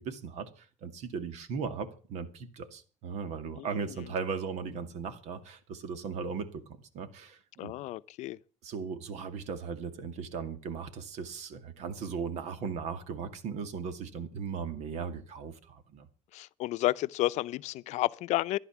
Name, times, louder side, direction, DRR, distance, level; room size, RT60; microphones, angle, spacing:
voice 1, 0.0-7.7 8.6-16.1, right 5 dB, 70° right, 2.2 m, -37 dB
voice 2, 3.6-4.1 7.6-8.4 16.3-18.6, left 16 dB, 75° left, 0.7 m, -31 dB
14.5 x 11.0 x 7.2 m
cardioid pair, 130°, 12 cm